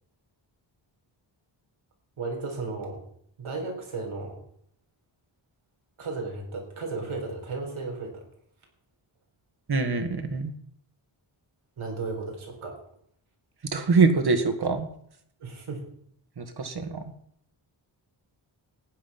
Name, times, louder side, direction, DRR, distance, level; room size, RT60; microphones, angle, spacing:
voice 1, 2.2-3.0 3.4-4.4 6.0-8.2 11.8-12.8 15.4-15.8, right 3 dB, 85° right, 1 dB, 4.4 m, -34 dB
voice 2, 9.7-10.5 13.7-14.9 16.4-17.0, right 4 dB, 50° right, 8 dB, 2.0 m, -24 dB
15.5 x 9.9 x 5.8 m, 0.67 s
wide cardioid pair, 95°, 48 cm